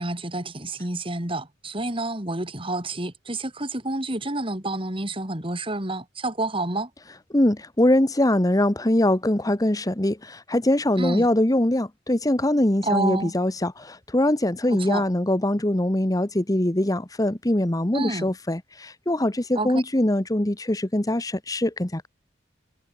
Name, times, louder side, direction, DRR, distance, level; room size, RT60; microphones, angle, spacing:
voice 1, 0.0-6.9 11.0-11.3 12.8-13.3 14.7-15.0 17.9-18.3 19.5-19.8, right 2 dB, 30° right, 3.3 m, -29 dB
voice 2, 7.3-22.1, left 1 dB, 20° left, 1.1 m, -22 dB
head